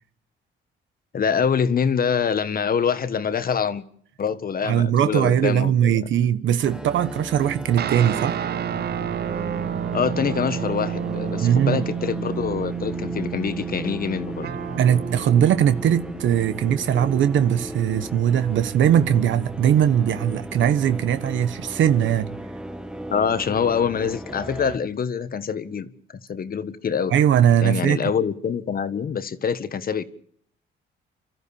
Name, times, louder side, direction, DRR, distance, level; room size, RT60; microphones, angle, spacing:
voice 1, 1.1-3.8 4.2-6.0 9.9-14.5 23.1-27.2 27.6-30.0, left 7 dB, 45° left, 1.5 m, -25 dB
voice 2, 4.6-8.4 11.4-11.9 14.7-22.3 27.1-28.1, right 9 dB, 75° right, 1.2 m, -20 dB
sound 1, 6.6-24.8, equal, 5° right, 1.4 m, -36 dB
sound 2, 7.8-17.5, right 9 dB, 55° right, 0.8 m, -31 dB
30.0 x 13.5 x 7.0 m
cardioid pair, 90°, 20 cm